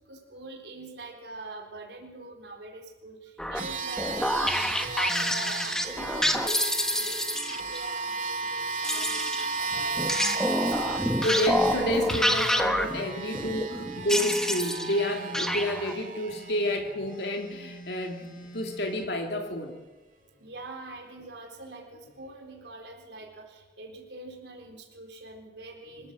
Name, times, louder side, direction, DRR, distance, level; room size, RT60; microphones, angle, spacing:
voice 1, 0.1-11.2 20.4-26.1, right 2 dB, 80° right, 1 dB, 4.1 m, -43 dB
sound 1, 3.4-7.8 8.8-15.1 15.3-15.9, equal, 5° left, 1.2 m, -28 dB
sound 2, 3.5-17.2, right 4 dB, 45° right, 2.3 m, -35 dB
voice 2, 11.2-19.8, left 1 dB, 75° left, 2 dB, 2.7 m, -29 dB
sound 3, 13.0-15.8 16.3-19.1, right 1 dB, 45° left, 1.8 m, -47 dB
25.5 x 15.0 x 7.6 m, 1.2 s
head